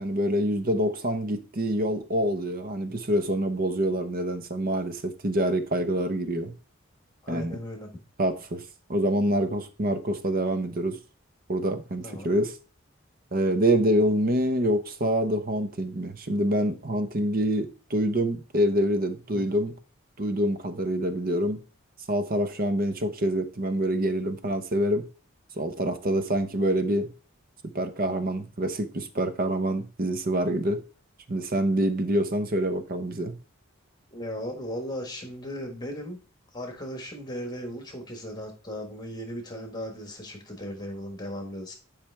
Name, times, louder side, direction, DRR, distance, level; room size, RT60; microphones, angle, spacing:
voice 1, 0.0-6.5 7.3-7.6 8.2-8.6 8.9-11.0 11.5-12.5 13.3-19.7 20.2-21.6 22.1-25.1 25.6-27.1 27.7-30.8 31.3-33.4, right 1 dB, 45° right, 0.9 m, -26 dB
voice 2, 7.2-7.9 12.0-12.3 19.3-19.4 34.1-36.2 36.5-41.7, equal, 20° left, 1.4 m, -37 dB
10.5 x 5.1 x 3.4 m
head